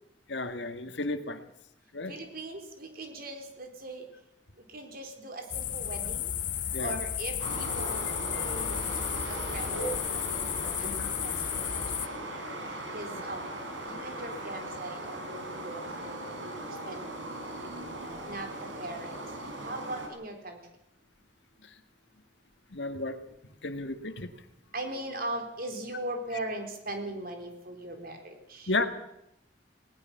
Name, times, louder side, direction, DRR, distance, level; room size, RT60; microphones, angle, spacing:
voice 1, 0.3-1.4 1.9-2.2 6.7-7.0 8.3-8.5 10.8-11.1 13.1-13.2 17.6-17.7 19.4-19.5 21.6-21.7 22.7-23.2 23.6-24.3 28.7-28.9, left 2 dB, 70° left, 9 dB, 1.8 m, -33 dB
voice 2, 2.1-4.1 4.7-6.3 6.8-8.0 8.4-10.8 11.2-11.8 12.3-13.4 13.9-17.5 18.2-19.2 19.6-20.6 24.7-28.7, right 1 dB, 50° right, 5 dB, 3.9 m, -40 dB
sound 1, 5.5-12.1, left 10 dB, 45° left, 0.8 m, -33 dB
sound 2, 7.4-20.1, right 1 dB, 85° right, 4.7 m, -38 dB
19.5 x 18.5 x 7.2 m, 0.81 s
head